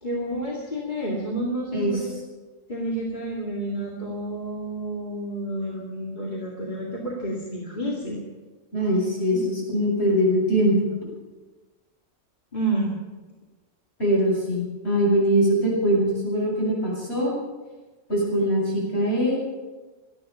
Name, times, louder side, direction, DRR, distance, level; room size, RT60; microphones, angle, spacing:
voice 1, 0.0-2.1 2.7-8.2 9.3-9.4 12.5-13.0, right 1 dB, 35° left, -4 dB, 2.4 m, -30 dB
voice 2, 8.7-10.8 14.0-17.3 18.1-19.4, equal, 55° left, -4 dB, 7.8 m, -22 dB
19.0 x 12.5 x 5.6 m, 1.3 s
omnidirectional pair, 1.3 m